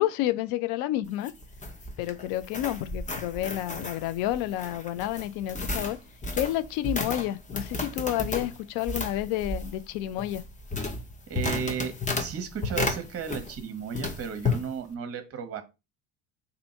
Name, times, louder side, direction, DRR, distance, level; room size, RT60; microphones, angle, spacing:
voice 1, 0.0-1.3 2.0-6.0 6.3-10.4, left 14 dB, 60° left, 0.5 m, -30 dB
sound 1, 1.0-13.7 13.9-14.6, left 3 dB, 20° left, 0.8 m, -33 dB
voice 2, 11.3-15.6, right 7 dB, 35° right, 0.9 m, -34 dB
2.7 x 2.7 x 4.2 m
hypercardioid pair, 65°, 41 cm